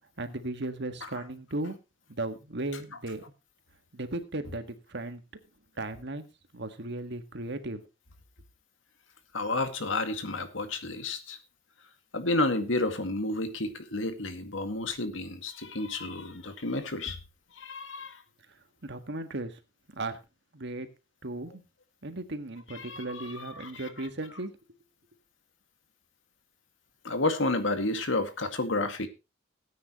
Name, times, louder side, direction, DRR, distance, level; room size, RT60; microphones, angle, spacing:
voice 1, 0.2-1.8 2.1-3.2 3.9-5.2 5.8-6.3 6.5-7.8 18.8-19.6 19.9-20.2 20.5-20.9 21.2-21.6 22.0-24.5, right 2 dB, 65° right, 9 dB, 1.7 m, -36 dB
voice 2, 9.3-11.4 12.1-17.2 17.6-18.2 22.7-23.9 27.0-29.1, left 2 dB, 80° left, 8 dB, 2.1 m, -31 dB
18.0 x 9.4 x 3.0 m, 0.27 s
head